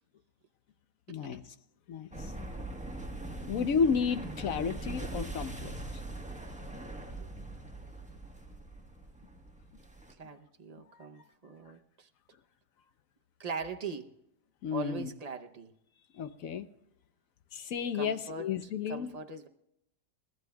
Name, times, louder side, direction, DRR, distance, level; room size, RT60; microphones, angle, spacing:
voice 1, 1.1-1.4 1.9-2.1 3.4-5.7 14.6-15.1 16.2-16.7 17.5-19.1, left 6 dB, 65° left, 11 dB, 1.1 m, -32 dB
sound 1, 2.1-10.1, right 2 dB, 5° right, 1.1 m, -41 dB
voice 2, 10.2-12.1 13.4-14.1 14.7-15.7 17.9-19.5, right 4 dB, 35° right, 5 dB, 0.6 m, -41 dB
29.5 x 14.0 x 2.3 m, 0.80 s
omnidirectional pair, 1.7 m